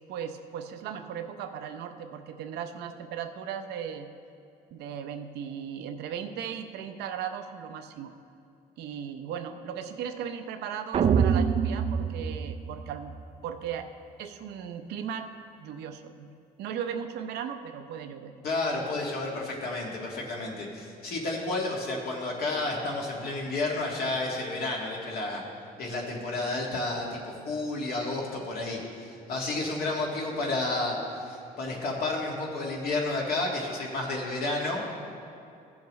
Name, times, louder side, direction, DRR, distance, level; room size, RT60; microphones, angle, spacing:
voice 1, 0.1-4.1 4.7-8.2 8.8-13.1 13.4-13.9 14.2-15.3 15.6-16.3 16.6-18.4, right 8 dB, 80° right, 7 dB, 0.7 m, -37 dB
sound 1, 10.9-13.2, right 7 dB, 35° right, 0.4 m, -25 dB
voice 2, 18.4-25.4 25.8-34.9, left 2 dB, 65° left, -2 dB, 1.9 m, -31 dB
15.0 x 7.2 x 3.1 m, 2.6 s
cardioid pair, 110°, 17 cm